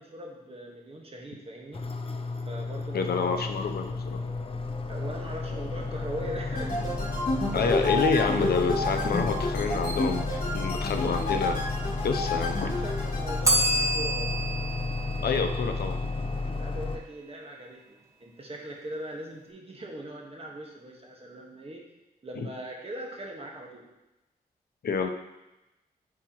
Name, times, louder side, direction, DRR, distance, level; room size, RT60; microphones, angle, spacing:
voice 1, 0.0-1.8 2.4-3.2 4.9-6.8 12.8-14.3 16.5-21.8 22.2-23.8, right 1 dB, 35° right, -1 dB, 1.6 m, -40 dB
sound 1, 1.7-17.0, left 3 dB, 35° left, 0.6 m, -32 dB
voice 2, 2.9-4.2 7.5-11.6 12.0-12.8 15.2-16.0 24.8-25.1, left 5 dB, 80° left, 5 dB, 0.7 m, -28 dB
sound 2, 6.5-13.4, left 2 dB, 60° left, 2.7 m, -30 dB
Bell, 13.4-16.3, right 1 dB, 20° right, 1.4 m, -28 dB
10.0 x 4.7 x 3.0 m, 0.98 s
wide cardioid pair, 85°, 16 cm